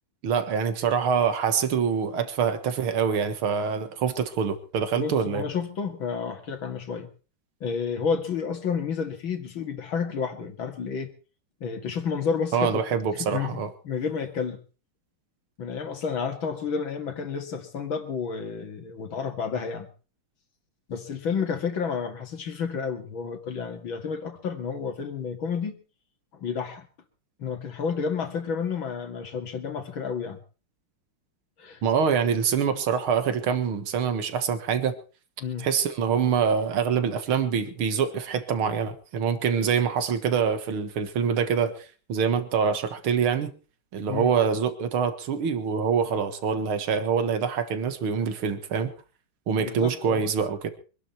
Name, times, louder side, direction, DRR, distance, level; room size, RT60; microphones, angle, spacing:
voice 1, 0.2-5.4 12.5-13.7 31.8-34.9 35.6-41.7 42.1-43.5 43.9-48.9 49.5-50.7, right 6 dB, 75° right, 2.4 m, -25 dB
voice 2, 4.9-7.1 7.6-11.1 11.6-12.8 13.1-14.6 15.6-19.9 20.9-25.7 26.3-26.9 27.4-30.4 31.6-31.8 35.4-35.7 44.1-44.3 49.6-50.2, left 6 dB, 65° left, 2.9 m, -30 dB
24.5 x 11.5 x 4.4 m
omnidirectional pair, 2.3 m